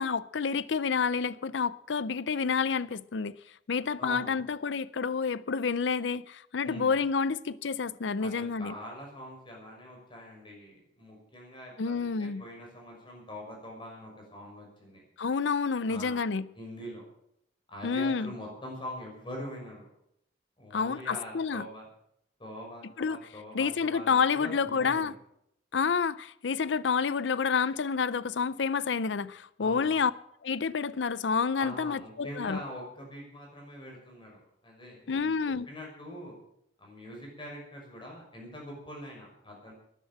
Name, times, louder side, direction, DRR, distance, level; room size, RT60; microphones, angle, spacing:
voice 1, 0.0-3.3 3.7-8.7 11.8-12.4 15.2-16.5 17.8-18.3 20.7-21.7 23.0-23.2 23.5-25.1 25.7-30.1 30.4-32.6 35.1-35.7, left 5 dB, 75° left, 0.5 m, -29 dB
voice 2, 4.0-4.5 6.6-7.0 8.2-15.0 15.9-16.3 16.6-17.0 17.7-19.9 20.6-21.9 22.4-25.1 29.6-30.0 31.6-36.3 36.8-39.7, equal, 30° left, 6.1 m, -44 dB
13.0 x 10.5 x 8.7 m
head